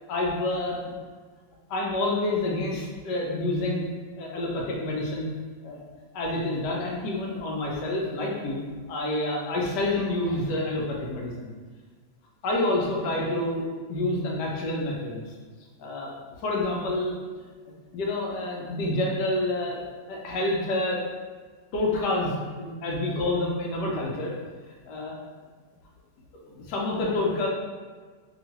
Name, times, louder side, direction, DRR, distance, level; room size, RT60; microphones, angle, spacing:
voice 1, 0.1-0.8 1.7-3.9 4.2-5.3 5.6-5.8 6.1-8.6 8.9-11.5 12.4-13.6 13.9-15.3 15.8-16.1 16.4-17.1 17.9-19.8 20.1-21.0 21.7-24.3 24.7-25.1 26.5-27.5, left 2 dB, 75° left, -2 dB, 1.2 m, -28 dB
2.9 x 2.7 x 2.8 m, 1.5 s
omnidirectional pair, 2.0 m